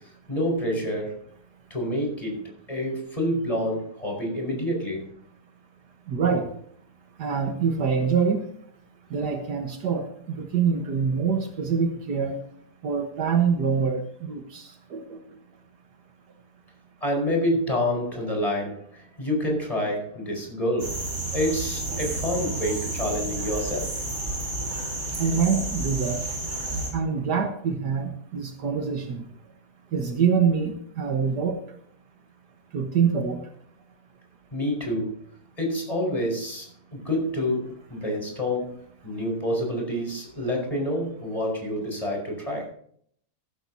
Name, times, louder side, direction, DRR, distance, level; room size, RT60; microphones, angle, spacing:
voice 1, 0.3-1.2 1.7-5.0 17.0-21.0 21.3-23.9 34.5-35.2 35.6-42.7, left 1 dB, 20° left, 0 dB, 5.1 m, -28 dB
voice 2, 6.1-6.5 7.2-8.5 9.1-12.4 12.8-15.4 25.2-26.2 26.9-29.3 29.9-31.6 32.7-33.5, right 6 dB, 75° right, 4 dB, 1.8 m, -25 dB
sound 1, 20.8-26.9, right 2 dB, 50° right, 4.2 m, -31 dB
14.5 x 13.5 x 2.8 m, 0.62 s
omnidirectional pair, 1.8 m